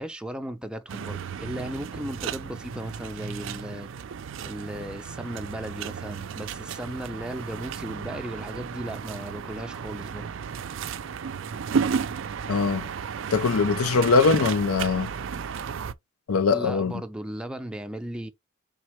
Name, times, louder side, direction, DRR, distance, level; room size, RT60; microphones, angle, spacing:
voice 1, 0.0-3.9 4.4-10.3 16.5-18.3, right 1 dB, 5° right, 0.5 m, -36 dB
sound 1, 0.9-15.9, right 6 dB, 60° right, 0.4 m, -33 dB
voice 2, 12.5-12.9 13.3-15.1 16.3-16.9, left 4 dB, 85° left, 0.5 m, -22 dB
4.2 x 3.6 x 3.0 m
head